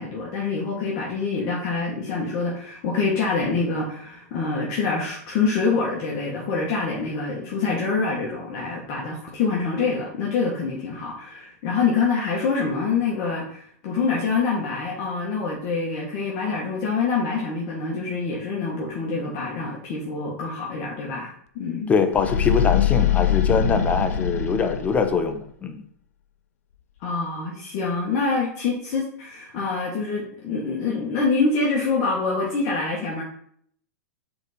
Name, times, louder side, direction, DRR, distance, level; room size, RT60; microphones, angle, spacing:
voice 1, 0.0-21.9 27.0-33.2, left 4 dB, 45° left, -3 dB, 1.5 m, -26 dB
voice 2, 21.9-25.8, left 5 dB, 15° left, 7 dB, 0.8 m, -23 dB
sound 1, 22.1-25.4, left 9 dB, 80° left, 0.5 m, -23 dB
4.8 x 4.1 x 5.1 m, 0.64 s
hypercardioid pair, 125°, 8 cm